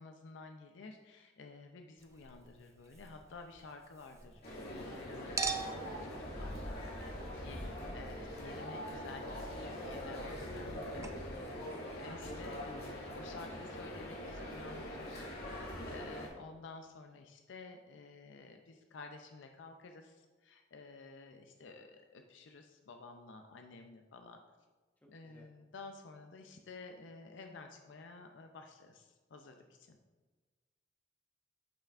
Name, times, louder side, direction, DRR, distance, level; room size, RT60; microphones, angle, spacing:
voice 1, 0.0-7.0 7.4-7.6 7.9-11.3 12.0-24.4 25.1-30.0, left 3 dB, 75° left, 5 dB, 0.5 m, -52 dB
Chink clink, 2.0-4.9 5.4-10.7 11.0-11.1, right 4 dB, 15° right, 0.4 m, -45 dB
sound 1, 4.4-16.3, left 1 dB, 55° left, 2.0 m, -43 dB
voice 2, 7.2-8.0 11.3-11.6 25.2-25.5, left 1 dB, 10° left, -2 dB, 1.0 m, -57 dB
8.7 x 5.6 x 2.4 m, 1.3 s
head